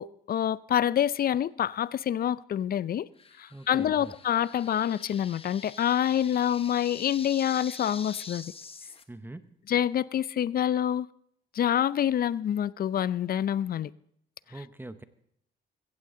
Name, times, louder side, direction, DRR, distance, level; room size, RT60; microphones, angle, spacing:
voice 1, 0.0-3.1 3.4-8.5 9.7-11.1 11.5-13.9, left 10 dB, 50° left, 0.5 m, -27 dB
sound 1, 3.2-9.0, left 4 dB, 30° left, 1.1 m, -45 dB
voice 2, 3.5-4.1 9.1-9.5 14.5-15.0, right 2 dB, 10° right, 0.9 m, -43 dB
15.5 x 15.0 x 3.8 m
cardioid pair, 90°, 20 cm